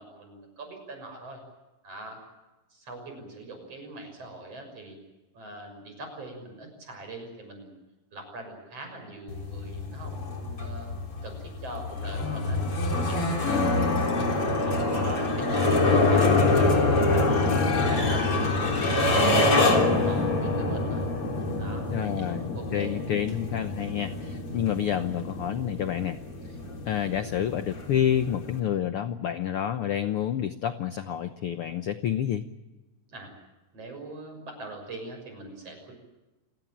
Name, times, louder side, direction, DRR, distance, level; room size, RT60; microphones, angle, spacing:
voice 1, 0.0-1.4 1.8-2.2 2.7-5.0 5.3-7.8 8.1-10.9 11.2-12.6 13.1-13.9 14.2-17.1 17.6-21.1 21.6-22.3 22.5-22.9 33.1-33.3 33.7-35.9, right 2 dB, 45° right, 5 dB, 7.3 m, -42 dB
sound 1, 9.3-28.6, left 2 dB, 40° left, 4.4 m, -26 dB
voice 2, 13.5-14.2 21.9-26.2 26.8-32.4, left 10 dB, 75° left, 10 dB, 1.3 m, -29 dB
28.5 x 17.5 x 8.7 m, 1.1 s
omnidirectional pair, 3.8 m